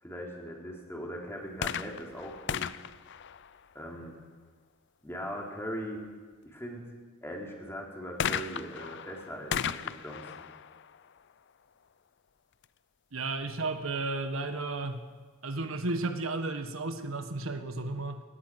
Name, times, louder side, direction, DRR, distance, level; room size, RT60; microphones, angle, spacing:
voice 1, 0.0-2.7 3.7-4.2 5.0-6.0 6.5-6.9 7.2-10.5, equal, 10° left, -1 dB, 3.9 m, -40 dB
sound 1, 1.5-4.1 8.2-11.8 12.6-12.7, left 8 dB, 60° left, 0.5 m, -36 dB
voice 2, 13.1-15.1 15.4-18.2, right 3 dB, 85° right, 7 dB, 1.4 m, -33 dB
19.0 x 19.0 x 7.8 m, 1.5 s
head